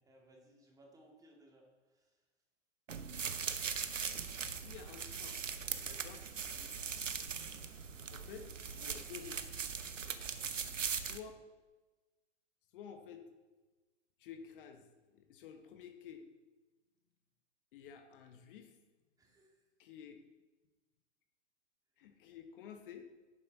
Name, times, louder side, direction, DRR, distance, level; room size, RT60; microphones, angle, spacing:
voice 1, 0.0-2.2 5.9-6.2 6.6-6.8 19.2-19.6, right 1 dB, 10° right, 0 dB, 2.1 m, -64 dB
sound 1, 2.9-11.2, right 6 dB, 80° right, 0.9 m, -40 dB
voice 2, 4.5-5.4 5.8-6.2 8.1-9.6 10.9-11.4 12.7-13.2 14.2-14.9 15.1-16.2 17.7-18.8 19.8-20.2 22.0-23.1, left 7 dB, 45° left, 6 dB, 1.2 m, -51 dB
11.0 x 8.3 x 4.0 m, 1.2 s
figure-of-eight pair, 110°, 37 cm